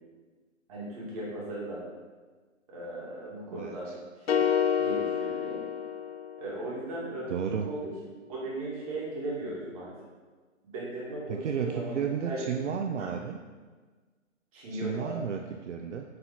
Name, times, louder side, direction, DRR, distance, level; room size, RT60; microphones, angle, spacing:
voice 1, 0.7-1.8 2.7-3.9 4.2-4.4 4.7-5.6 6.4-7.9 8.3-9.9 10.7-12.5 13.0-13.1 14.5-15.2, right 1 dB, 25° right, -6 dB, 2.4 m, -37 dB
voice 2, 3.5-3.9 7.3-7.7 11.3-13.4 14.7-16.0, right 7 dB, 65° right, 4 dB, 0.6 m, -33 dB
sound 1, 4.3-6.6, left 8 dB, 50° left, 0.6 m, -28 dB
9.7 x 4.3 x 4.4 m, 1.4 s
hypercardioid pair, 160°, 39 cm